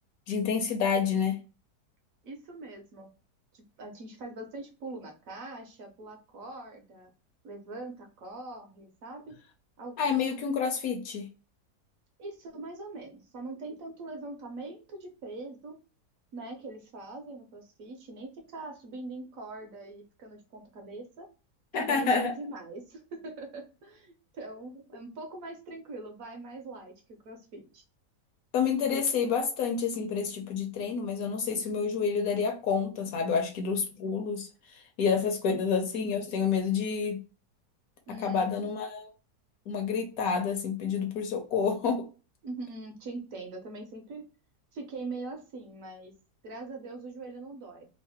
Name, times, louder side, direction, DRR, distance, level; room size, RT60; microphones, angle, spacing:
voice 1, 0.3-1.4 10.0-11.3 21.7-22.3 28.5-37.2 38.2-39.1 39.7-42.1, left 6 dB, 70° left, 0.9 m, -29 dB
voice 2, 2.2-3.1 3.5-7.1 7.4-9.4 9.8-10.0 12.2-15.8 16.3-21.3 21.8-26.9 27.2-27.8 38.1-38.7 42.4-44.2 44.7-46.1 46.4-47.9, right 2 dB, 65° right, 0.9 m, -42 dB
3.1 x 2.0 x 2.8 m
omnidirectional pair, 1.8 m